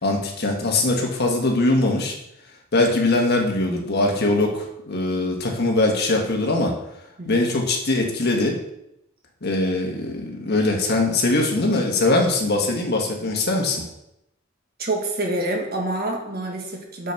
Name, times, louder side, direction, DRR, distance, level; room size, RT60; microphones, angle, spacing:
voice 1, 0.0-2.2 2.7-6.7 7.2-8.6 9.4-13.8, left 2 dB, 55° left, 1 dB, 1.5 m, -21 dB
voice 2, 14.8-17.1, right 2 dB, 50° right, 1 dB, 1.6 m, -27 dB
6.7 x 6.2 x 4.5 m, 0.81 s
head